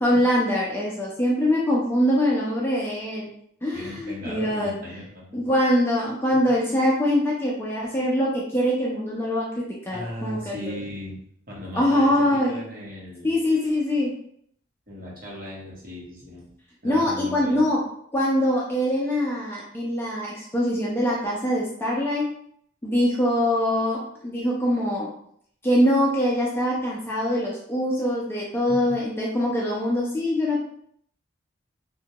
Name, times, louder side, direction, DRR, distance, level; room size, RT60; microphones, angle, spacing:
voice 1, 0.0-3.3 3.6-4.8 5.3-10.7 11.7-12.6 13.2-14.1 16.8-17.8 18.1-22.3 22.8-25.1 25.6-30.6, left 1 dB, 10° left, -5 dB, 0.4 m, -23 dB
voice 2, 3.7-5.4 9.9-11.1 11.5-13.5 14.9-16.5 16.8-17.7 28.7-28.8, left 1 dB, 45° right, -5 dB, 0.9 m, -37 dB
2.8 x 2.1 x 2.8 m, 0.68 s
head